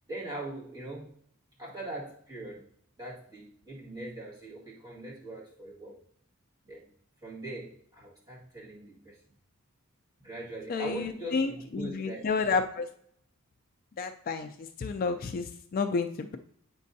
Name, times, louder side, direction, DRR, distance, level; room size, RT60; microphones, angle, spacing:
voice 1, 0.1-1.1 1.6-2.7 3.0-6.0 6.6-6.9 7.2-9.2 10.2-12.2, right 1 dB, 20° right, -6 dB, 1.9 m, -41 dB
voice 2, 10.7-12.9 14.0-16.4, left 4 dB, 40° left, 8 dB, 0.3 m, -31 dB
8.3 x 5.3 x 2.7 m, 0.66 s
head